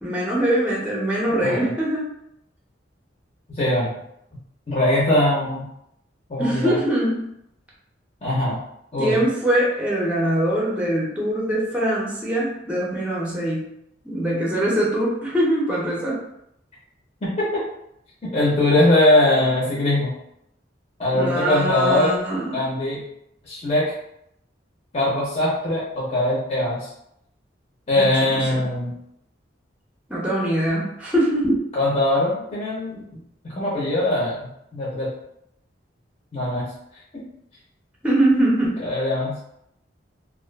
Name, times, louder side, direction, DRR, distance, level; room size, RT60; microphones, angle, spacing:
voice 1, 0.0-2.1 6.4-7.3 9.0-13.7 14.0-16.2 21.1-22.6 28.0-28.1 28.3-28.6 30.1-31.6 38.0-38.8, right 1 dB, 5° right, -4 dB, 0.6 m, -22 dB
voice 2, 1.2-1.7 3.6-3.9 4.7-5.6 6.3-6.8 8.2-8.6 8.9-9.2 17.2-17.6 18.2-20.1 21.0-22.1 22.5-23.0 23.4-23.9 24.9-26.9 27.9-28.9 31.7-33.0 33.4-34.4 34.7-35.1 36.3-36.7 38.8-39.4, left 1 dB, 35° left, -8 dB, 0.7 m, -21 dB
2.4 x 2.4 x 2.2 m, 0.77 s
head